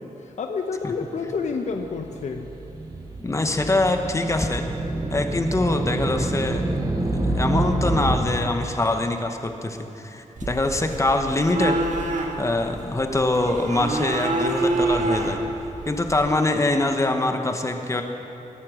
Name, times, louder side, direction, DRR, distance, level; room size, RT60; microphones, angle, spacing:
voice 1, 0.2-2.5, left 5 dB, 60° left, 4 dB, 0.8 m, -29 dB
sound 1, 1.7-8.2, right 2 dB, 30° right, 1.9 m, -27 dB
voice 2, 3.2-4.6 5.1-6.6 7.3-11.8 12.4-15.4 15.9-18.0, left 2 dB, 20° left, 5 dB, 1.1 m, -24 dB
sound 2, 10.4-16.4, right 2 dB, 65° right, 1.6 m, -27 dB
21.5 x 8.5 x 6.3 m, 2.9 s
wide cardioid pair, 120°, 13 cm